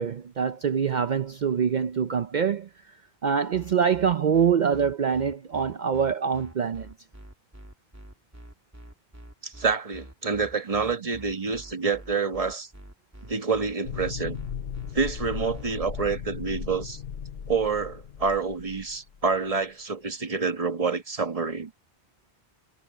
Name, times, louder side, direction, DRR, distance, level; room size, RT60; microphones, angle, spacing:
voice 1, 0.0-2.7 3.2-6.9, right 7 dB, 55° right, 0.7 m, -24 dB
sound 1, 3.5-16.1, right 1 dB, 15° right, 2.9 m, -46 dB
voice 2, 9.4-12.7 13.2-14.4 14.9-17.0 17.5-21.7, right 4 dB, 35° right, 1.3 m, -27 dB
sound 2, 13.8-19.3, left 7 dB, 70° left, 1.1 m, -37 dB
omnidirectional pair, 1.0 m